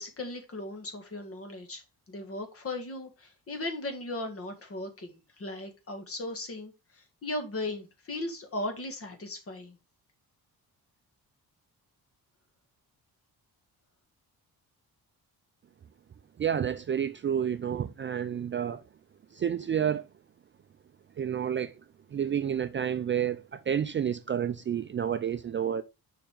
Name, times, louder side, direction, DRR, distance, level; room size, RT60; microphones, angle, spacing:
voice 1, 0.0-1.8 2.1-9.8, left 2 dB, 35° left, 1.7 m, -37 dB
voice 2, 16.4-18.8 19.3-20.1 21.2-21.7 22.1-25.8, right 9 dB, 35° right, 0.4 m, -30 dB
7.0 x 5.0 x 3.6 m
wide cardioid pair, 155°, 37 cm